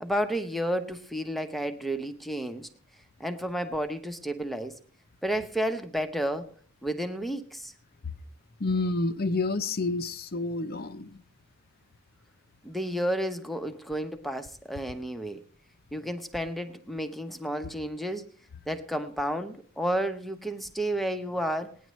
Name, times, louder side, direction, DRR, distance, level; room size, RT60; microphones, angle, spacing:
voice 1, 0.0-2.7 3.2-4.8 5.2-6.5 6.8-7.7 12.6-15.4 15.9-18.3 18.7-21.8, equal, ahead, 0.7 m, -31 dB
voice 2, 8.6-11.2, left 3 dB, 45° left, 0.6 m, -29 dB
19.0 x 10.0 x 3.1 m
head